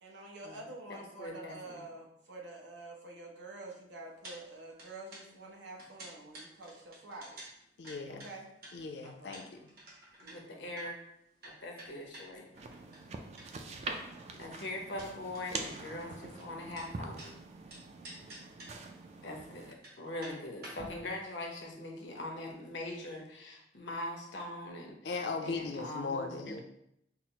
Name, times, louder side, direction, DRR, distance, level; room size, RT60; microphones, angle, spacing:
voice 1, 0.0-7.4 8.1-8.5 9.0-9.4 10.2-10.6, right 2 dB, 90° right, 0 dB, 0.8 m, -48 dB
voice 2, 0.9-1.8 10.2-11.0 11.6-12.5 14.4-17.4 19.2-24.9 25.4-26.5, left 1 dB, 90° left, 0 dB, 0.8 m, -42 dB
sound 1, 4.2-4.4 4.6-13.7 14.0-17.3 17.7-18.9 19.2-19.3 19.7-23.0 23.3-23.4, right 1 dB, 60° right, 1.1 m, -51 dB
voice 3, 7.8-8.3 8.7-9.7 25.0-26.6, left 4 dB, 70° left, 4 dB, 0.5 m, -38 dB
sound 2, 12.5-19.7, right 3 dB, 40° right, 0.3 m, -44 dB
5.7 x 2.0 x 2.8 m, 0.77 s
head